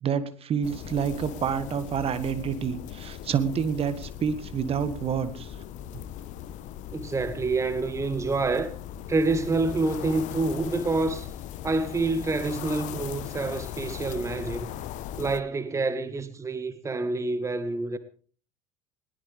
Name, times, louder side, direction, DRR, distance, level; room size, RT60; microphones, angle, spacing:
voice 1, 0.0-5.5, right 7 dB, 35° right, 1.6 m, -28 dB
sound 1, 0.6-15.4, left 11 dB, 45° left, 0.9 m, -39 dB
voice 2, 6.9-8.7 9.1-11.3 11.6-14.7 15.2-18.0, right 3 dB, 15° right, 1.4 m, -27 dB
21.0 x 18.0 x 3.4 m
figure-of-eight pair, 65°, 17 cm